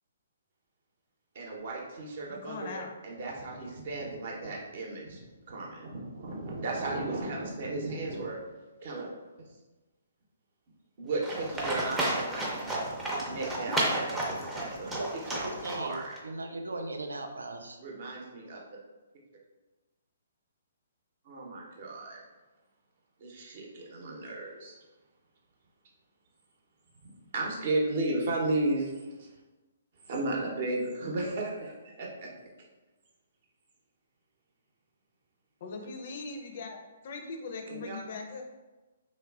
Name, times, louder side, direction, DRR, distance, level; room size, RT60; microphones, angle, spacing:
voice 1, 1.3-2.8 3.0-8.4 8.8-9.1 9.4-9.5 11.0-14.9 15.3-15.5 15.7-16.1 17.8-18.6 21.2-22.2 23.2-24.7 27.3-29.3 30.0-32.3 37.7-38.0, right 2 dB, 50° right, -2 dB, 0.7 m, -34 dB
voice 2, 2.3-2.9 35.6-36.8 37.0-38.4, left 4 dB, 50° left, 3 dB, 0.4 m, -40 dB
Livestock farm animals working animals, 11.2-16.2, right 1 dB, 10° right, 0.5 m, -32 dB
voice 3, 15.0-17.8, right 2 dB, 75° right, 4 dB, 0.3 m, -38 dB
3.0 x 2.4 x 2.3 m, 1.2 s
figure-of-eight pair, 125°, 0 cm